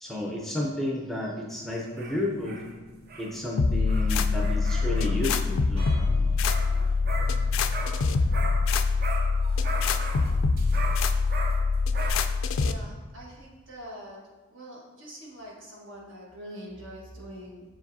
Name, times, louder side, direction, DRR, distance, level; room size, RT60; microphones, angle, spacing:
voice 1, 0.0-2.6 3.2-5.9, left 1 dB, ahead, -2 dB, 0.5 m, -31 dB
sound 1, 1.7-8.7 9.0-12.1, right 2 dB, 45° right, 0.6 m, -39 dB
sound 2, 3.6-12.7, left 4 dB, 70° left, 0.3 m, -24 dB
sound 3, 5.8-7.8, equal, 30° right, 1.3 m, -45 dB
voice 2, 12.6-14.2 14.5-17.6, equal, 60° right, -4 dB, 1.5 m, -44 dB
7.1 x 4.9 x 2.7 m, 1.3 s
head